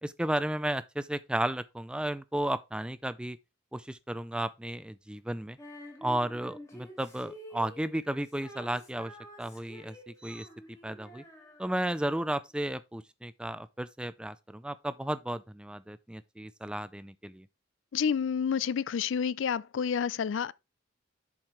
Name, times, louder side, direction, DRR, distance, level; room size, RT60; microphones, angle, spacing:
voice 1, 0.0-3.4 3.7-5.6 6.0-9.1 9.4-10.5 10.8-11.2 11.6-17.5, right 1 dB, 5° right, 0.3 m, -33 dB
Female singing, 5.6-12.1, equal, 15° left, 1.7 m, -49 dB
voice 2, 17.9-20.5, left 7 dB, 75° left, 0.4 m, -29 dB
7.4 x 4.9 x 4.4 m
head